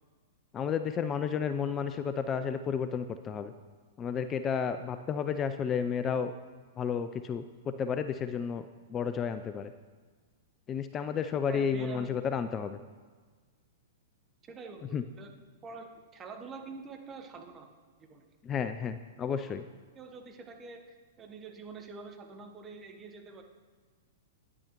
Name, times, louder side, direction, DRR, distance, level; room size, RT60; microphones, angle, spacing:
voice 1, 0.5-3.5 4.0-6.3 6.8-7.4 7.8-8.6 8.9-9.7 10.7-12.8 14.9-15.0 18.4-19.6, left 7 dB, 25° left, 10 dB, 0.3 m, -32 dB
voice 2, 11.5-12.1 14.4-15.3 15.6-17.7 18.0-18.3 19.3-19.6 19.9-20.8 21.2-23.4, right 4 dB, 20° right, 4 dB, 0.9 m, -46 dB
10.0 x 8.4 x 3.0 m, 1.5 s
figure-of-eight pair, 105°, 0 cm